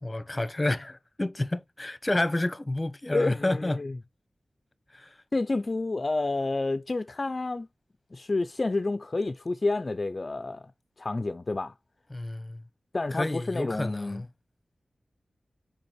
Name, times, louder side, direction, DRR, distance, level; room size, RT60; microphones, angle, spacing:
voice 1, 0.0-3.8 4.9-5.1 12.1-12.6 13.1-14.3, left 1 dB, 20° left, 0.8 m, -30 dB
voice 2, 3.1-3.9 5.3-7.7 8.1-10.7 11.0-11.7 12.9-14.2, left 2 dB, 40° left, 0.4 m, -29 dB
6.8 x 5.1 x 3.0 m
wide cardioid pair, 75°, 0 cm